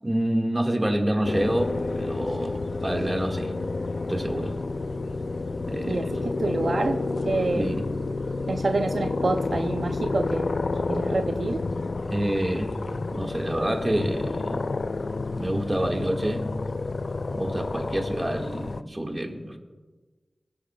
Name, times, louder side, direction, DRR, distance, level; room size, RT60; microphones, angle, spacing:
voice 1, 0.0-3.5 4.1-4.5 5.7-6.2 7.5-7.9 12.0-12.8 13.1-14.7 15.4-16.4 17.3-19.6, right 1 dB, 20° right, 2 dB, 1.7 m, -27 dB
sound 1, 1.2-18.8, left 3 dB, 65° left, 0.3 m, -30 dB
voice 2, 5.9-7.0 7.3-7.7 8.5-10.6 10.9-11.6, right 3 dB, 70° right, 6 dB, 0.5 m, -27 dB
23.0 x 10.5 x 2.3 m, 1.3 s
wide cardioid pair, 70°, 0 cm